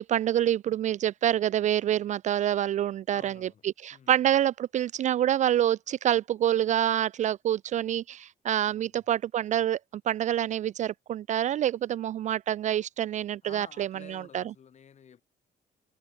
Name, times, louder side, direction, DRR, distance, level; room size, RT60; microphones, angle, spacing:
voice 1, 0.0-9.8 10.1-14.4, right 11 dB, 45° right, 0.4 m, -27 dB
voice 2, 3.1-4.1 8.7-9.0 13.4-15.2, left 8 dB, 45° left, 3.8 m, -52 dB
cardioid pair, 110°, 17 cm